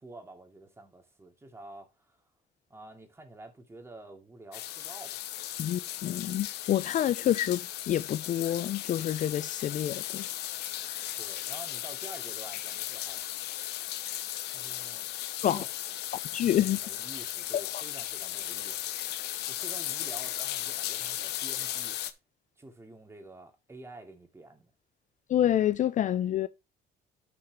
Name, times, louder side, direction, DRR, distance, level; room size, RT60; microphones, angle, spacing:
voice 1, 0.0-2.2 2.7-5.3 11.2-13.3 14.5-15.1 15.4-18.9 19.5-22.0 22.6-24.7, right 2 dB, 15° right, 2.6 m, -49 dB
sound 1, 4.5-22.1, left 13 dB, 80° left, 0.9 m, -36 dB
voice 2, 5.6-10.3 10.9-11.0 15.4-15.6 16.3-16.8 25.3-26.5, left 11 dB, 50° left, 0.5 m, -28 dB
11.5 x 6.1 x 3.1 m
cardioid pair, 110°, 17 cm